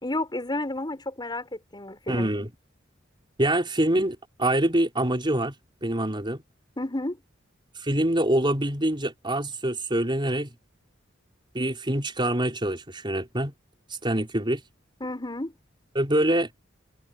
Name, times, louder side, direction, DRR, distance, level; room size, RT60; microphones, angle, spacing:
voice 1, 0.0-2.3 6.8-7.2 15.0-15.5, left 1 dB, 25° left, 5.7 m, -31 dB
voice 2, 2.1-2.5 3.4-5.5 5.8-6.4 7.8-10.5 11.5-13.5 14.0-14.6 15.9-16.5, right 1 dB, 25° right, 4.8 m, -25 dB
head